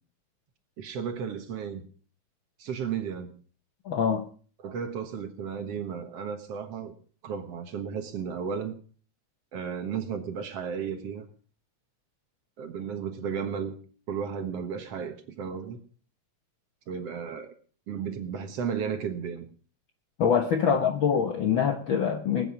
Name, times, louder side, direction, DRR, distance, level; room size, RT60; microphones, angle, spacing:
voice 1, 0.8-1.9 2.6-3.3 4.6-6.9 7.2-8.8 9.5-11.3 12.6-13.8 14.1-15.8 16.9-17.5 17.9-19.5 20.7-20.8, right 7 dB, 60° right, 2.2 m, -34 dB
voice 2, 3.8-4.2 20.2-22.5, left 7 dB, 65° left, 1.2 m, -24 dB
20.0 x 9.3 x 5.0 m
omnidirectional pair, 3.5 m